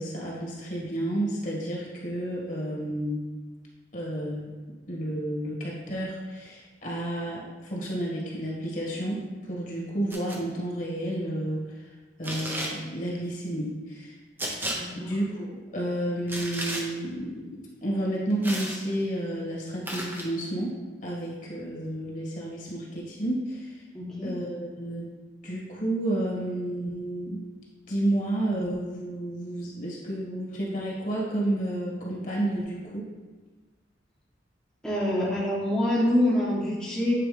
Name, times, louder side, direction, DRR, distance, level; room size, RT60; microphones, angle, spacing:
voice 1, 0.0-3.2 3.9-4.5 4.9-11.9 12.2-14.2 15.0-20.7 21.0-23.8 24.2-25.1 25.4-27.4 27.9-33.0, right 1 dB, 45° left, -4 dB, 1.9 m, -31 dB
sound 1, 10.1-10.4 12.2-12.8 14.4-14.8 16.3-16.8 18.4-18.8 19.9-20.3, right 1 dB, 10° right, 0.8 m, -33 dB
voice 2, 14.7-15.1 23.9-24.3 34.8-37.1, left 1 dB, 5° left, -8 dB, 1.2 m, -26 dB
8.9 x 4.7 x 3.4 m, 1.3 s
head